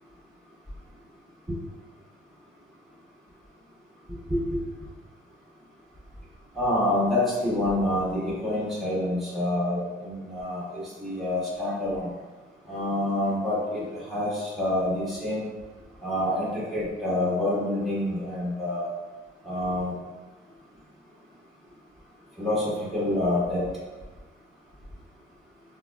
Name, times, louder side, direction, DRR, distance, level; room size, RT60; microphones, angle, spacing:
voice 1, 6.5-12.1 12.7-15.5 16.0-18.9 19.4-19.9 22.4-23.7, left 1 dB, ahead, -9 dB, 1.3 m, -27 dB
3.9 x 2.2 x 2.3 m, 1.2 s
cardioid pair, 90°, 20 cm